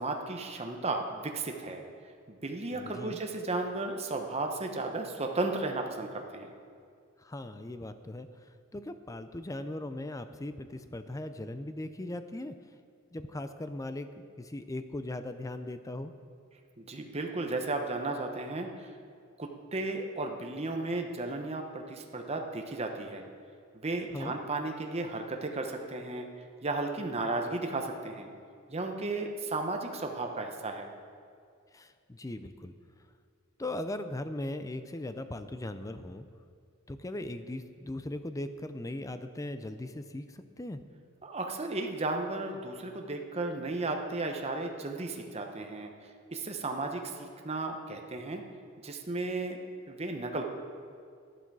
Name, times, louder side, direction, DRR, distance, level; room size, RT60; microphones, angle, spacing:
voice 1, 0.0-1.8 2.3-6.5 16.8-19.0 19.4-23.2 23.7-26.3 26.6-28.3 28.7-30.9 41.2-48.4 48.8-49.6 49.9-50.4, right 2 dB, 30° right, 3 dB, 0.9 m, -34 dB
voice 2, 2.7-3.2 7.2-12.5 13.1-14.1 14.4-16.1 24.1-24.3 31.7-32.7 33.6-36.3 36.9-40.8, left 1 dB, 15° left, 10 dB, 0.5 m, -39 dB
12.0 x 11.0 x 4.8 m, 2.2 s
head